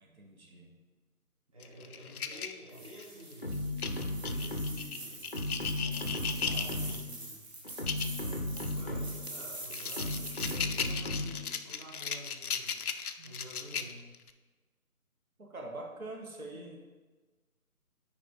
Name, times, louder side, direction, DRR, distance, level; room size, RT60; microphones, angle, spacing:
voice 1, 0.0-0.8 13.2-13.3 15.4-16.8, right 2 dB, 70° right, 1 dB, 1.5 m, -44 dB
voice 2, 1.5-3.5 4.2-5.2 5.7-7.4 8.0-12.7 13.2-14.0, equal, 25° right, -7 dB, 0.9 m, -50 dB
sound 1, 1.6-3.2 3.8-7.0 7.7-8.2 8.6-8.7 9.3-14.3, left 6 dB, 75° left, 0.6 m, -37 dB
sound 2, 2.7-11.0, right 2 dB, 45° right, 1.6 m, -45 dB
sound 3, 3.4-4.9 5.3-7.1 7.6-9.3 10.0-11.5, left 1 dB, 40° left, 0.6 m, -35 dB
9.8 x 3.5 x 3.8 m, 1.3 s
figure-of-eight pair, 165°, 44 cm